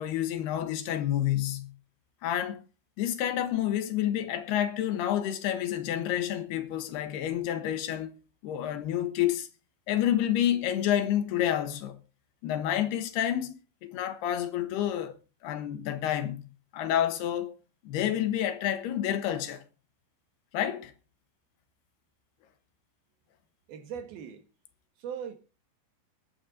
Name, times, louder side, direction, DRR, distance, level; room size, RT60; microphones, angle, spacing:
voice 1, 0.0-1.7 2.2-2.6 3.0-8.2 8.4-9.5 9.9-12.0 12.4-15.1 15.4-16.4 16.7-17.5 17.8-19.6 20.5-20.9, left 11 dB, 80° left, 3.1 m, -29 dB
voice 2, 23.7-24.4 25.0-25.4, right 8 dB, 70° right, 3.4 m, -39 dB
21.5 x 8.4 x 3.9 m
omnidirectional pair, 4.8 m